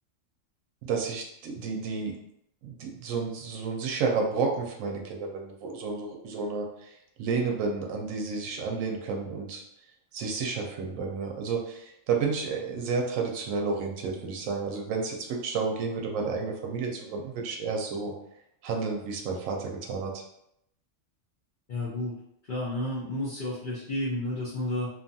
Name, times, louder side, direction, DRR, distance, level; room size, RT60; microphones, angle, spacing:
voice 1, 0.8-2.1 2.6-9.6 10.1-18.1 18.6-20.2, right 4 dB, 85° right, 1 dB, 1.0 m, -31 dB
voice 2, 21.7-22.1 22.5-24.9, left 1 dB, 50° left, -6 dB, 0.7 m, -31 dB
2.7 x 2.3 x 2.6 m, 0.76 s
omnidirectional pair, 1.3 m